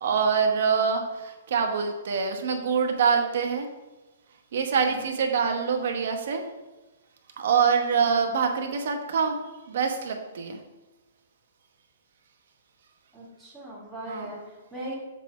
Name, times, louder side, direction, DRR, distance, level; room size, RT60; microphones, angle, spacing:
voice 1, 0.0-3.7 4.5-6.4 7.4-9.4 9.7-10.6 14.1-14.3, right 6 dB, 65° right, 4 dB, 1.2 m, -25 dB
voice 2, 13.1-14.9, right 1 dB, 5° right, -10 dB, 2.3 m, -39 dB
7.3 x 3.9 x 4.9 m, 1.1 s
hypercardioid pair, 145°, 0 cm